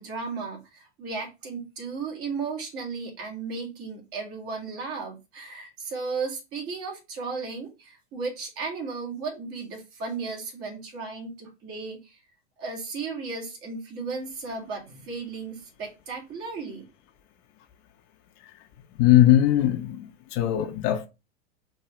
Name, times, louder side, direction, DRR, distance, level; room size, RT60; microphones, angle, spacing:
voice 1, 0.0-12.2 12.6-16.9, right 4 dB, 40° right, 2.2 m, -35 dB
voice 2, 19.0-21.1, left 13 dB, 45° left, 0.8 m, -20 dB
4.4 x 3.1 x 3.7 m
hypercardioid pair, 125°, 33 cm